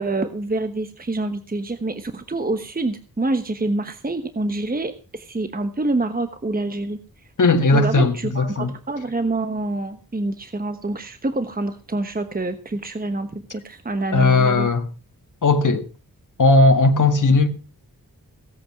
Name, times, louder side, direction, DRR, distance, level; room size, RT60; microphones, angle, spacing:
voice 1, 0.0-7.0 7.7-14.7, right 2 dB, 25° right, 1.2 m, -26 dB
voice 2, 7.4-8.7 14.1-14.9 15.4-15.8 16.4-17.5, left 3 dB, 60° left, 2.0 m, -17 dB
17.0 x 8.3 x 6.0 m
wide cardioid pair, 100°, 35 cm